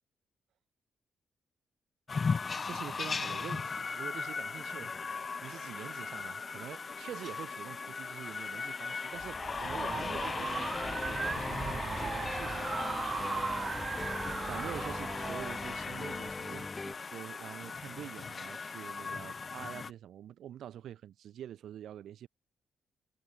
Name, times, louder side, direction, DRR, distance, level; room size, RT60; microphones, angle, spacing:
sound 1, 2.1-19.9, left 5 dB, 45° left, 0.6 m, -38 dB
voice 1, 2.6-12.9 14.5-22.3, right 11 dB, 75° right, 3.1 m, -46 dB
sound 2, 9.2-16.3, right 5 dB, 45° right, 0.3 m, -38 dB
sound 3, 9.6-16.9, left 3 dB, 30° left, 1.9 m, -42 dB
supercardioid pair, 55°, 0 cm